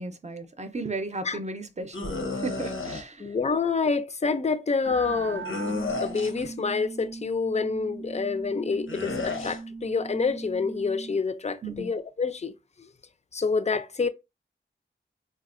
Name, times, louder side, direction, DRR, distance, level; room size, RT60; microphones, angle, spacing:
voice 1, 0.0-3.3 11.6-11.9, right 2 dB, 35° right, 0.6 m, -35 dB
sound 1, 1.9-3.0 5.4-6.5 8.9-9.6, left 3 dB, 80° left, 0.8 m, -32 dB
voice 2, 3.2-12.9 13.3-14.1, left 4 dB, 35° left, 0.4 m, -28 dB
sound 2, 4.9-11.2, right 4 dB, 90° right, 0.5 m, -39 dB
3.9 x 2.1 x 2.5 m
wide cardioid pair, 50°, 20 cm